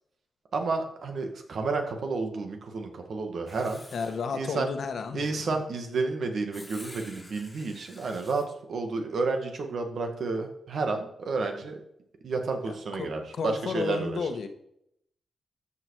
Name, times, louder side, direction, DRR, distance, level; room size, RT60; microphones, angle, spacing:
voice 1, 0.5-3.8 4.3-4.7 5.1-8.4 8.7-11.8 12.2-14.2, right 3 dB, 70° right, 4 dB, 2.0 m, -31 dB
Writing, 3.5-4.2 6.5-8.5, left 1 dB, 15° left, 1.8 m, -49 dB
voice 2, 3.9-5.4 12.6-14.5, left 5 dB, 70° left, 7 dB, 1.3 m, -33 dB
13.5 x 6.0 x 4.9 m, 0.74 s
cardioid pair, 90°, 0 cm